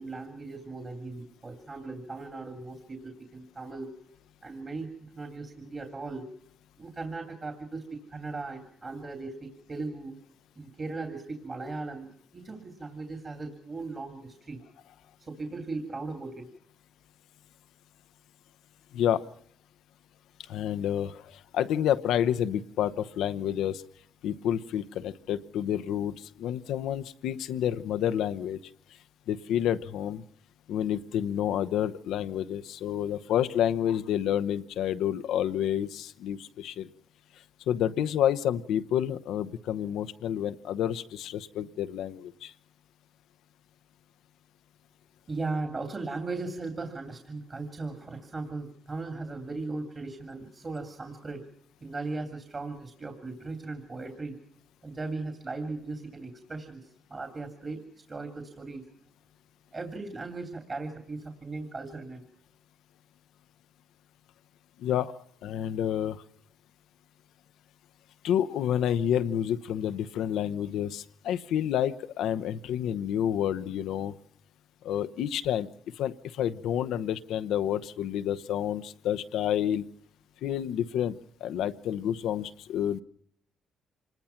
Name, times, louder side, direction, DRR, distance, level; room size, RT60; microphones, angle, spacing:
voice 1, 0.0-3.9 4.4-6.3 6.8-10.2 10.6-14.6 15.2-16.5 45.3-51.5 51.8-54.4 54.8-57.8 58.1-58.9 59.7-62.3, right 3 dB, 30° right, 5 dB, 3.0 m, -38 dB
voice 2, 20.5-23.8 24.2-28.6 29.3-30.2 30.7-36.9 37.7-42.5 64.8-65.1 65.4-66.2 68.2-74.2 74.8-75.7 76.0-79.8 80.4-83.0, left 10 dB, 85° left, 11 dB, 0.9 m, -29 dB
26.0 x 20.0 x 5.9 m, 0.67 s
cardioid pair, 90°, 0 cm